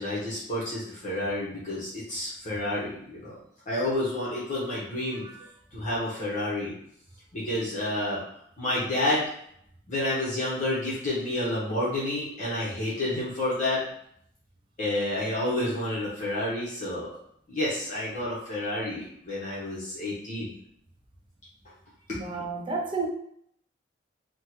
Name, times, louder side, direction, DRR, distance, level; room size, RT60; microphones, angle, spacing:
voice 1, 0.0-3.3 3.7-5.2 5.7-6.7 7.3-8.2 8.6-9.3 9.9-13.8 14.8-17.1 17.5-20.5 22.1-22.2, left 1 dB, 40° left, -8 dB, 0.8 m, -29 dB
voice 2, 22.1-23.1, right 3 dB, 25° right, 1 dB, 0.4 m, -31 dB
3.4 x 2.1 x 3.0 m, 0.69 s
head